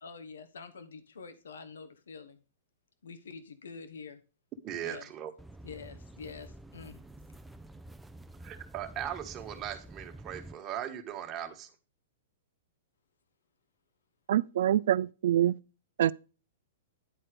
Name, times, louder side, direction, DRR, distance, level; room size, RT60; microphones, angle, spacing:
voice 1, 0.0-2.4 3.0-4.2 4.8-5.1 5.6-7.0, left 5 dB, 75° left, 1.0 m, -46 dB
voice 2, 4.6-5.3 8.4-11.7, right 10 dB, 30° right, 1.4 m, -38 dB
sound 1, 5.4-10.5, right 1 dB, 5° right, 0.5 m, -49 dB
voice 3, 14.3-15.5 16.0-16.1, right 11 dB, 65° right, 0.3 m, -25 dB
10.0 x 4.2 x 5.0 m
hypercardioid pair, 115°, 0 cm